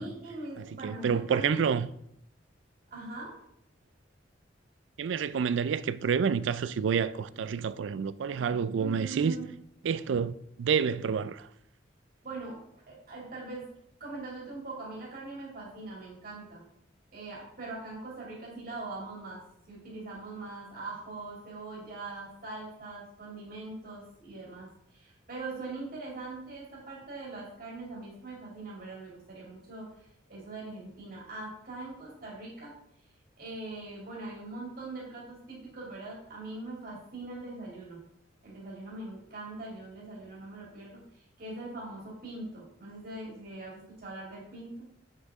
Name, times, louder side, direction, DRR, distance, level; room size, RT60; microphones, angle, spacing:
voice 1, 0.0-1.7 2.9-3.4 8.8-9.4 12.2-13.7 14.0-16.6 17.1-32.7 33.4-38.0 38.4-44.8, right 2 dB, 50° right, 2.4 m, -42 dB
voice 2, 0.8-1.9 5.0-9.4 9.8-11.5, right 6 dB, 75° right, 0.4 m, -28 dB
7.4 x 6.4 x 3.6 m
head